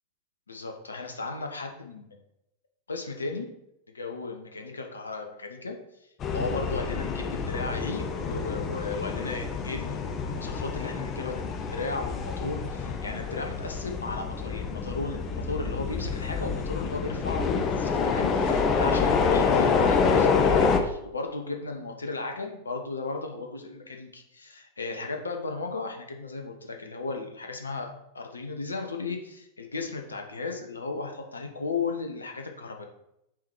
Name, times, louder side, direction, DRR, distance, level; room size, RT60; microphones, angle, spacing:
voice 1, 0.5-2.2 2.9-3.5 3.9-5.8 6.3-32.8, left 3 dB, 75° left, 4 dB, 0.9 m, -35 dB
sound 1, 6.2-20.8, left 5 dB, 30° left, 0.8 m, -27 dB
5.9 x 4.7 x 4.6 m, 0.82 s
figure-of-eight pair, 90°, 0 cm